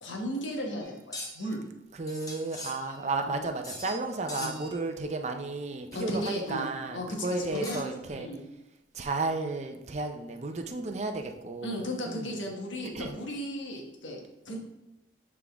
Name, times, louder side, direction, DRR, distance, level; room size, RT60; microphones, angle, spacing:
voice 1, 0.0-1.6 3.2-3.4 4.4-4.5 5.9-6.7 6.9-8.4 11.6-14.6, equal, 85° left, 0 dB, 1.2 m, -35 dB
Sword blade ring and scrape, 0.8-1.5 2.1-3.2 3.6-4.0 4.3-4.8 5.9-6.6 7.2-8.1, left 1 dB, 20° left, 0.8 m, -42 dB
voice 2, 1.9-8.3 8.9-12.4 12.9-13.2, right 3 dB, 35° right, 5 dB, 0.5 m, -33 dB
7.9 x 3.7 x 3.5 m, 0.91 s
head